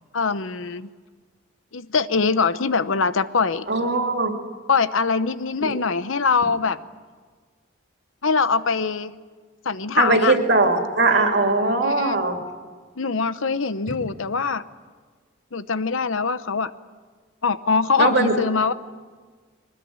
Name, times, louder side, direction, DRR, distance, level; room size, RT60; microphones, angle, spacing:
voice 1, 0.1-0.9 1.7-3.7 4.7-6.8 8.2-9.1 9.6-10.4 11.8-12.2 13.0-14.6 15.5-16.7 17.4-18.7, left 4 dB, 75° left, 13 dB, 0.9 m, -23 dB
voice 2, 3.7-4.3 5.6-5.7 10.0-12.4 18.0-18.4, right 3 dB, 55° right, 3 dB, 2.8 m, -20 dB
23.0 x 20.0 x 9.6 m, 1.5 s
head